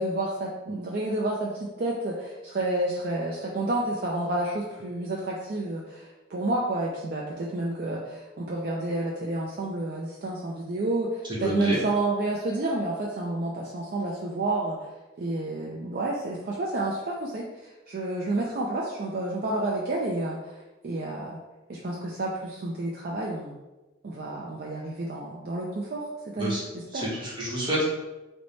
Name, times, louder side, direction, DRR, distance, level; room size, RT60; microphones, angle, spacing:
voice 1, 0.0-14.8 15.2-21.4 21.7-23.6 24.0-26.1 26.3-27.0, right 2 dB, 45° right, -3 dB, 0.4 m, -30 dB
voice 2, 11.3-11.8 26.4-26.6 26.9-27.8, equal, 20° right, -6 dB, 0.9 m, -28 dB
3.1 x 2.1 x 3.9 m, 1.1 s
head